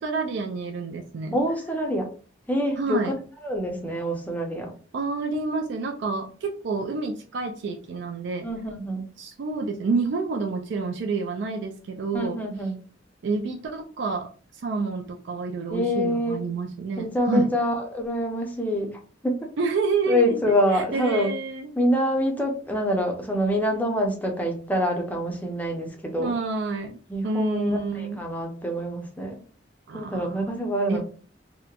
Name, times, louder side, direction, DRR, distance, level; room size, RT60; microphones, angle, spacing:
voice 1, 0.0-1.4 2.8-3.2 4.9-8.5 9.2-12.4 13.2-14.3 14.6-17.5 19.6-21.7 26.2-27.0 27.2-28.2 29.9-30.6 30.9-31.0, right 4 dB, 65° right, 2 dB, 0.4 m, -28 dB
voice 2, 1.3-2.1 2.5-3.1 3.4-4.7 8.4-9.1 12.1-12.7 15.7-16.4 17.0-19.5 20.1-21.3 21.7-26.3 27.1-29.4 29.9-31.0, equal, 10° left, 1 dB, 0.5 m, -26 dB
2.8 x 2.1 x 2.3 m, 0.39 s
head